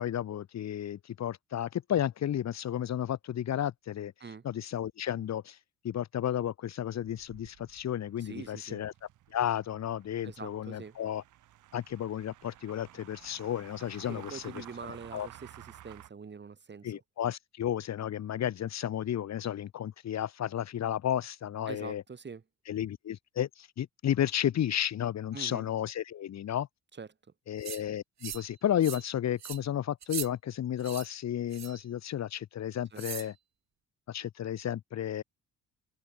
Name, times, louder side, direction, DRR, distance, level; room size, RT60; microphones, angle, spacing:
voice 1, 0.0-4.1 4.4-5.6 5.8-8.9 9.3-11.2 11.7-14.6 15.1-15.3 16.8-22.0 22.7-26.7 27.5-33.3 34.1-35.2, left 10 dB, 60° left, 1.9 m, -33 dB
sound 1, 7.0-16.1, right 13 dB, 80° right, 6.4 m, -54 dB
voice 2, 8.2-8.8 10.2-11.0 14.0-17.0 21.7-22.4 25.3-25.6 27.0-27.1 32.9-33.0, right 5 dB, 35° right, 6.8 m, -44 dB
sound 2, 27.6-27.8 28.2-28.5 28.8-29.1 29.4-29.6 30.0-30.3 30.8-31.1 31.5-31.8 33.0-33.3, right 10 dB, 65° right, 5.4 m, -40 dB
open air
cardioid pair, 90°, 30 cm